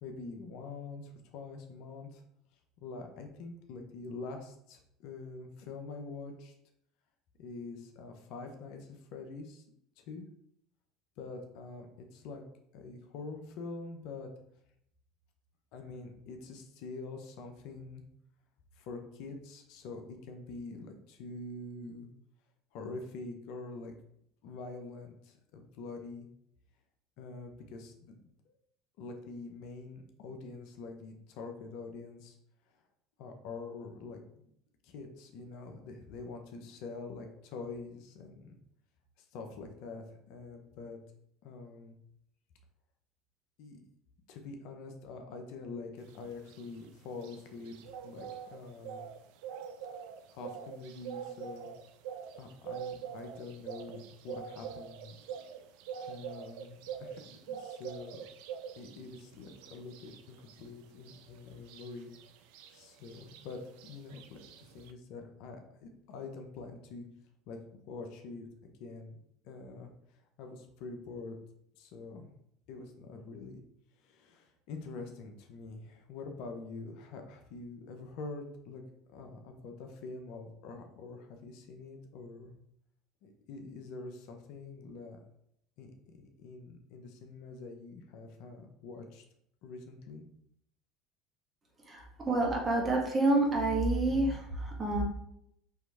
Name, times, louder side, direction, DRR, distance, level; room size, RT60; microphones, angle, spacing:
voice 1, 0.0-2.2 2.8-6.5 7.4-9.6 10.0-10.3 11.2-12.4 12.7-14.3 15.7-18.0 18.8-22.1 22.7-23.9 24.4-26.3 27.2-28.1 28.4-28.6 29.0-32.4 33.2-34.5 34.8-38.6 39.2-41.0 41.4-41.9 43.6-43.8 44.3-47.8 48.0-49.0 50.3-51.7 52.4-55.2 56.1-58.2 58.7-62.1 62.7-67.0 67.5-69.2 69.4-69.9 70.4-71.4 71.8-72.3 72.7-73.6 74.0-78.8 79.1-82.5 83.2-85.2 85.8-89.2 89.6-90.3, left 3 dB, 65° left, 4 dB, 0.7 m, -45 dB
sound 1, 46.1-64.9, right 8 dB, 70° right, 0.4 m, -45 dB
voice 2, 91.8-95.0, right 2 dB, 35° right, -1 dB, 1.6 m, -28 dB
4.6 x 3.1 x 3.4 m, 0.74 s
hypercardioid pair, 80°, 0 cm